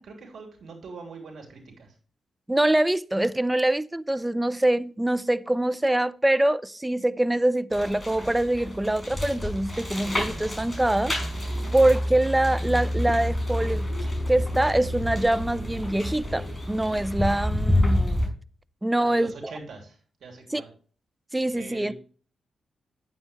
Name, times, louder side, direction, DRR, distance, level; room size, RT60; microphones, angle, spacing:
voice 1, 0.0-1.9 18.9-20.7 21.5-21.9, right 4 dB, 70° right, 3.1 m, -43 dB
voice 2, 2.5-11.1 11.7-13.9 14.3-18.3 18.8-19.5 20.5-20.6 21.3-21.9, right 1 dB, 15° right, 0.5 m, -24 dB
sound 1, 7.7-18.3, left 1 dB, 15° left, 5.1 m, -28 dB
9.5 x 8.0 x 3.2 m
supercardioid pair, 45°, 0 cm